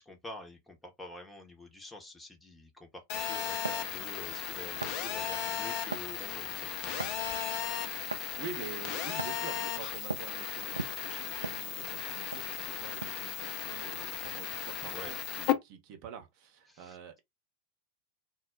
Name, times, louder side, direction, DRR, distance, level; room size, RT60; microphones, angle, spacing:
voice 1, 0.0-7.2 14.9-15.1 16.7-17.0, left 2 dB, 10° left, 0.8 m, -48 dB
Telephone, 3.1-15.5, left 10 dB, 40° left, 0.5 m, -36 dB
sound 1, 3.6-3.9 4.8-5.0 5.9-6.1 7.0-7.3 8.1-8.3 9.2-9.5 10.1-10.3 10.8-12.0 12.3-12.5 13.0-13.3, right 4 dB, 75° right, 0.3 m, -39 dB
voice 2, 8.0-17.2, right 7 dB, 45° right, 0.8 m, -47 dB
2.2 x 2.1 x 3.7 m
figure-of-eight pair, 90°, 0 cm